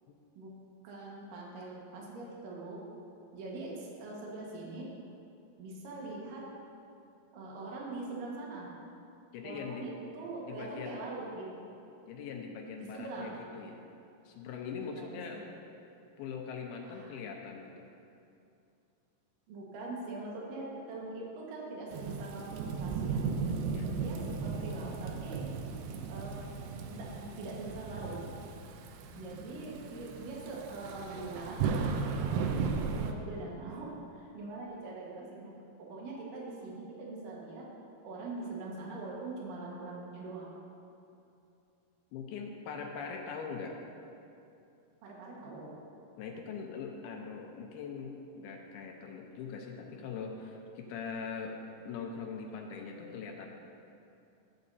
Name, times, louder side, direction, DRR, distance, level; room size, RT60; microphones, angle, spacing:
voice 1, 0.8-2.8 3.3-4.8 5.6-6.4 7.3-8.7 9.4-11.6 12.8-13.3 14.8-15.4 16.8-17.1 19.5-23.2 23.9-25.4 26.1-26.3 26.9-28.2 29.2-31.6 32.9-35.5 35.8-37.6 38.0-40.5 45.0-45.7, right 2 dB, 65° right, -3 dB, 2.9 m, -42 dB
voice 2, 9.3-9.9 10.4-11.0 12.1-13.8 14.3-15.4 16.2-17.9 23.7-23.9 29.1-29.7 42.1-43.8 46.2-51.5 51.9-53.5, left 5 dB, 80° left, 1 dB, 2.6 m, -42 dB
Thunderstorm / Rain, 21.9-33.1, right 5 dB, 90° right, 1.9 m, -36 dB
14.0 x 8.7 x 2.7 m, 2.7 s
omnidirectional pair, 4.6 m